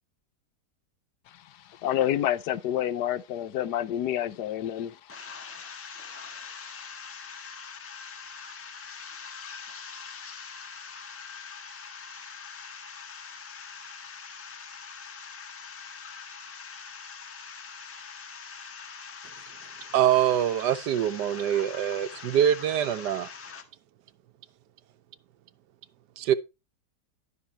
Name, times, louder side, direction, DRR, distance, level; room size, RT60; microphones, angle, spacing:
voice 1, 1.7-6.9, left 11 dB, 80° left, 1.3 m, -30 dB
voice 2, 5.1-23.6, left 5 dB, 10° left, 1.4 m, -43 dB
voice 3, 19.9-23.3 26.2-26.3, right 10 dB, 85° right, 1.3 m, -24 dB
12.5 x 6.0 x 4.4 m
omnidirectional pair, 1.8 m